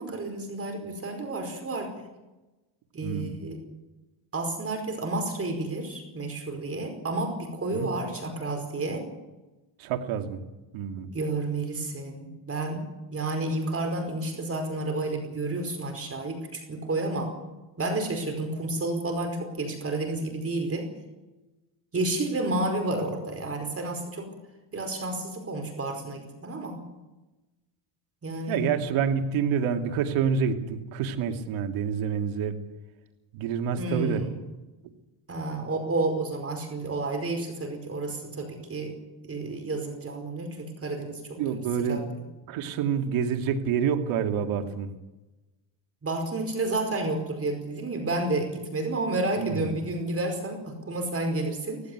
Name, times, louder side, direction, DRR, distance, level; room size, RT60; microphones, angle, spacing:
voice 1, 0.0-1.9 2.9-3.6 4.3-9.0 11.1-12.8 13.1-17.3 17.8-20.9 21.9-24.3 24.7-26.8 28.2-28.6 33.7-34.4 35.3-38.9 39.2-41.6 41.9-42.0 46.0-51.8, right 2 dB, 30° right, 5 dB, 5.0 m, -30 dB
voice 2, 3.0-3.3 7.7-7.9 9.8-10.4 10.7-11.1 28.5-32.6 33.3-34.2 41.4-42.0 42.5-44.9 49.4-49.7, right 7 dB, 75° right, 5 dB, 2.6 m, -27 dB
17.5 x 16.5 x 9.5 m, 1.1 s
cardioid pair, 120°, 48 cm